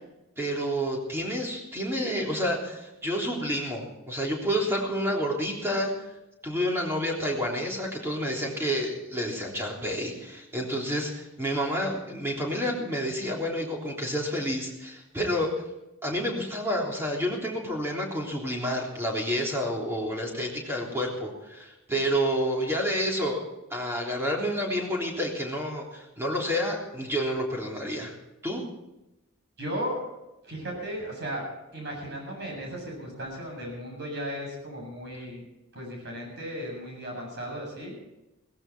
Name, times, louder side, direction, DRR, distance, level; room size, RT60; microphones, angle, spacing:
voice 1, 0.4-5.9 6.4-15.5 16.0-23.4 23.7-28.1 28.4-28.6, equal, 10° right, -2 dB, 3.5 m, -29 dB
voice 2, 29.6-30.0 30.4-31.5 31.7-35.4 35.7-37.9, equal, 50° right, 0 dB, 7.9 m, -35 dB
17.0 x 15.5 x 4.4 m, 0.95 s
head